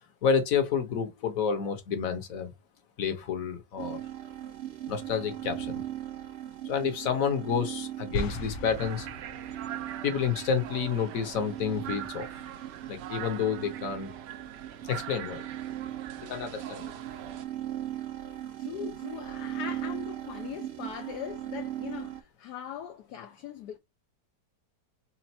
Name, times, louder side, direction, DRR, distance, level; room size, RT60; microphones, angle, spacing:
voice 1, 0.2-2.5 3.0-4.0 4.9-5.8 6.6-9.1 10.0-12.3 12.9-14.1 14.9-15.4 16.2-16.9, left 6 dB, 55° left, 1.4 m, -29 dB
sound 1, 3.8-22.2, right 12 dB, 50° right, 0.9 m, -39 dB
sound 2, 8.1-9.8, left 2 dB, 85° left, 1.6 m, -36 dB
sound 3, 8.8-17.4, right 10 dB, 75° right, 1.2 m, -43 dB
voice 2, 18.6-23.8, left 9 dB, 70° left, 1.1 m, -40 dB
4.4 x 2.5 x 4.2 m
omnidirectional pair, 1.9 m